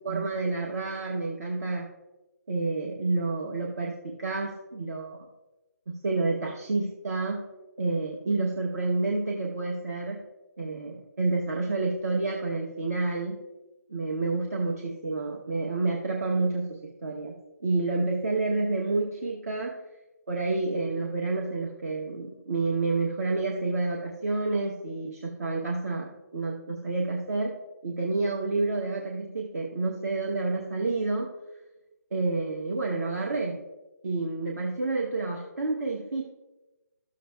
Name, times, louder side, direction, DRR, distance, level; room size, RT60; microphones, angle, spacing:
voice 1, 0.0-1.9 2.5-5.3 5.9-7.5 7.8-10.2 10.6-13.4 13.9-17.3 17.6-19.8 20.3-26.1 26.3-27.5 27.8-31.3 32.1-33.6 34.0-36.2, right 3 dB, 55° right, -1 dB, 1.0 m, -29 dB
12.5 x 6.9 x 2.3 m, 1.1 s
figure-of-eight pair, 145°, 10 cm